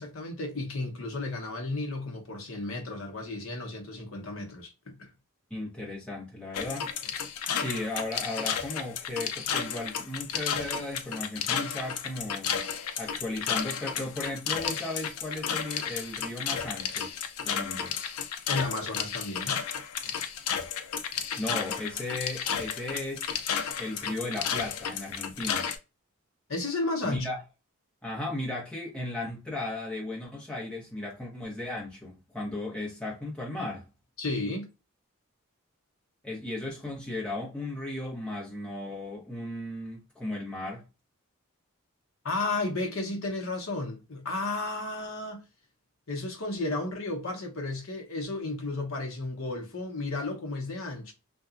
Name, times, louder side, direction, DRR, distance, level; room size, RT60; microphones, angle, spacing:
voice 1, 0.0-5.1 18.5-19.6 26.5-27.3 34.2-34.7 42.2-45.4 46.1-51.1, left 2 dB, 70° left, 0.8 m, -33 dB
voice 2, 5.5-6.9 7.5-12.6 13.0-17.1 17.4-18.0 21.4-23.4 23.8-25.7 27.0-27.4 28.0-33.9 36.2-40.8, left 2 dB, 5° left, 0.9 m, -36 dB
sound 1, 6.5-25.8, left 7 dB, 90° left, 0.4 m, -32 dB
2.8 x 2.2 x 2.4 m
head